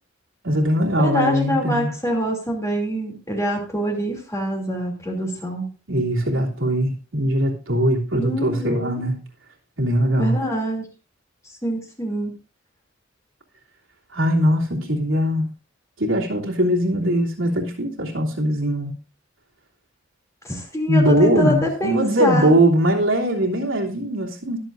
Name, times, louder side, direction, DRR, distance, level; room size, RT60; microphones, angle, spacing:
voice 1, 0.4-1.9 5.9-9.2 9.8-10.4 14.1-15.5 16.0-18.9 20.9-24.6, right 1 dB, 85° right, -2 dB, 3.0 m, -20 dB
voice 2, 1.0-5.7 8.1-9.0 10.2-10.8 11.6-12.3 20.4-22.5, equal, 15° left, 1 dB, 2.9 m, -25 dB
22.5 x 7.6 x 2.6 m, 0.35 s
head